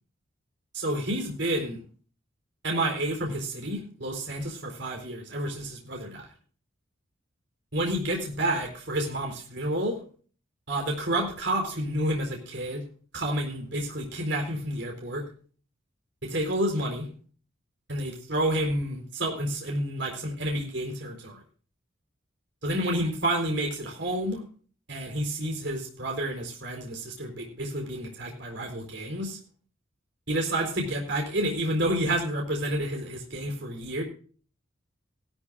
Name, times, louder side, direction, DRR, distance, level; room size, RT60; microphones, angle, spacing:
voice 1, 0.7-1.8 2.6-6.3 7.7-10.0 10.7-12.8 13.1-15.2 16.3-17.1 17.9-21.4 22.6-24.4 24.9-29.4 30.3-34.0, right 1 dB, 55° right, 1 dB, 4.2 m, -29 dB
17.0 x 13.5 x 2.5 m, 0.40 s
head